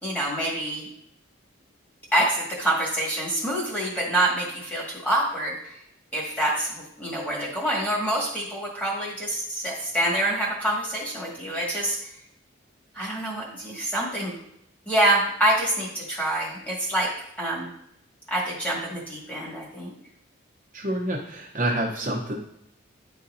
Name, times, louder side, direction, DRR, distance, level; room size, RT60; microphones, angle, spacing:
voice 1, 0.0-0.9 2.1-5.7 6.1-12.0 12.9-14.3 14.8-17.1 17.4-17.7 18.3-19.9, right 1 dB, 5° left, -5 dB, 1.8 m, -26 dB
voice 2, 20.7-22.4, right 1 dB, 40° right, -3 dB, 0.9 m, -27 dB
10.5 x 4.1 x 2.7 m, 0.77 s
head